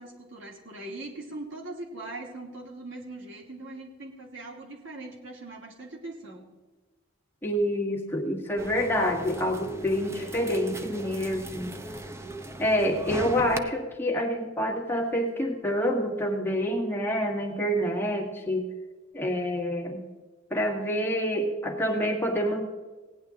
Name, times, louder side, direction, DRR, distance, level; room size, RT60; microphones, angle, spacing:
voice 1, 0.0-6.5, right 2 dB, 70° right, -1 dB, 2.7 m, -41 dB
voice 2, 7.4-11.8 12.6-18.7 19.1-20.0 20.5-22.6, equal, 10° left, 0 dB, 1.7 m, -27 dB
sound 1, 8.6-13.6, right 1 dB, 15° right, 0.7 m, -38 dB
17.5 x 10.0 x 3.8 m, 1.3 s
head